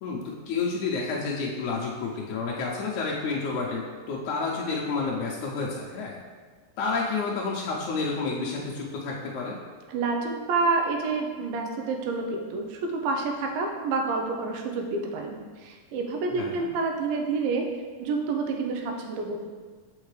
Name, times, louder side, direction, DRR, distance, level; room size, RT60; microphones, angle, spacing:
voice 1, 0.0-6.2 6.8-9.6 16.3-16.7, left 4 dB, 80° left, -4 dB, 1.8 m, -30 dB
voice 2, 9.9-17.7 18.0-19.4, right 3 dB, 85° right, 3 dB, 2.5 m, -28 dB
6.5 x 5.3 x 3.2 m, 1.5 s
omnidirectional pair, 4.0 m